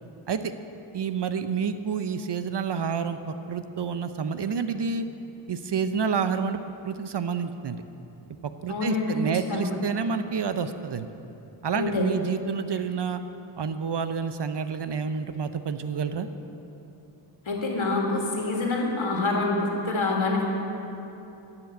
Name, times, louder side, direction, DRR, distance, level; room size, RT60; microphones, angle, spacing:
voice 1, 0.9-5.1 5.5-6.6 6.8-7.8 8.6-11.1 11.6-13.2 13.6-16.3, right 6 dB, 55° right, 10 dB, 0.7 m, -29 dB
voice 2, 8.7-9.2 9.5-9.8 11.7-12.1 17.5-20.4, left 3 dB, 70° left, 0 dB, 2.2 m, -26 dB
11.5 x 6.0 x 9.0 m, 2.9 s
cardioid pair, 45°, 50 cm